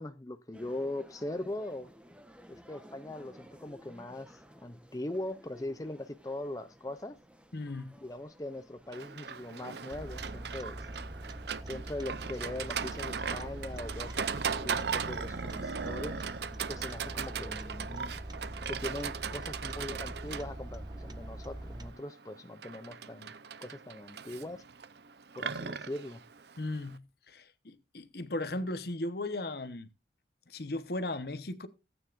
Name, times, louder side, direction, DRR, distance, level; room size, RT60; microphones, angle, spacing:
voice 1, 0.0-1.9 2.5-7.2 8.0-10.9 11.6-14.2 14.6-16.2 16.7-18.2 18.7-23.3 23.6-24.6 25.3-26.2, left 1 dB, 20° left, 0.5 m, -40 dB
sound 1, 0.5-18.6, equal, 5° right, 1.0 m, -56 dB
voice 2, 7.5-7.9 26.6-27.0 27.3-29.9 30.5-31.7, left 2 dB, 55° left, 1.0 m, -36 dB
Livestock farm animals working animals, 8.9-27.0, right 6 dB, 65° right, 0.6 m, -38 dB
sound 2, 9.9-21.9, right 1 dB, 20° right, 0.7 m, -43 dB
17.5 x 9.2 x 2.5 m
head